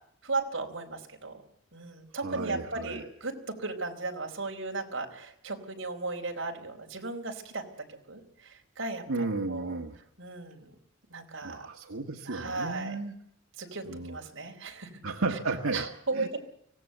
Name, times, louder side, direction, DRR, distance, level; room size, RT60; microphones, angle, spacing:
voice 1, 0.2-1.4 1.7-7.6 7.9-9.0 9.5-9.8 10.2-10.7 11.1-11.7 12.2-13.0 13.6-14.9 15.3-15.4 15.7-16.4, right 3 dB, 60° right, 2 dB, 4.4 m, -36 dB
voice 2, 2.2-3.0 9.1-10.0 11.4-13.1 13.9-14.2 15.0-15.8 16.1-16.4, right 3 dB, 90° right, 3 dB, 1.7 m, -33 dB
24.5 x 17.5 x 8.0 m, 0.73 s
head